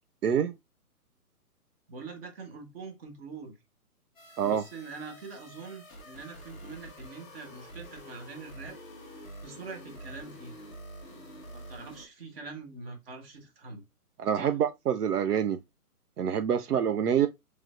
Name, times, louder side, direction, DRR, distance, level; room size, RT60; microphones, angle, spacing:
voice 1, 0.2-0.5 4.4-4.6 14.2-15.6 16.2-17.3, right 8 dB, 80° right, 0.5 m, -26 dB
voice 2, 1.9-3.6 4.4-8.8 9.4-10.6 11.5-13.8 14.3-14.6, right 4 dB, 40° right, 1.2 m, -44 dB
sound 1, 4.1-12.0, equal, 5° left, 0.5 m, -47 dB
4.4 x 3.2 x 2.3 m
figure-of-eight pair, 135°, 46 cm